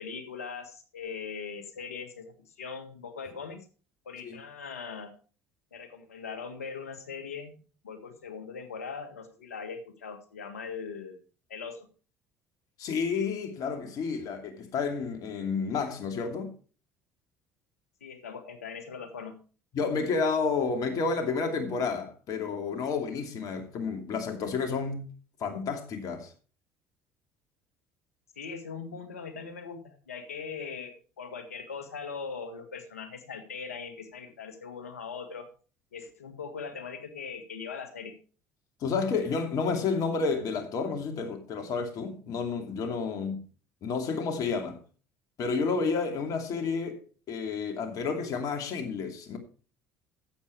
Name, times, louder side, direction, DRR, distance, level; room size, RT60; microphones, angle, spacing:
voice 1, 0.0-3.6 4.0-5.1 5.7-7.5 7.8-11.2 11.5-11.9 18.0-19.3 28.4-35.5 35.9-38.1 46.5-46.7, left 5 dB, 85° left, 1.6 m, -40 dB
voice 2, 12.8-16.5 19.7-25.0 25.4-26.3 38.8-43.4 43.8-44.8 45.4-47.0 47.3-49.4, left 5 dB, 55° left, 2.6 m, -30 dB
11.5 x 8.2 x 4.5 m
hypercardioid pair, 65°, 8 cm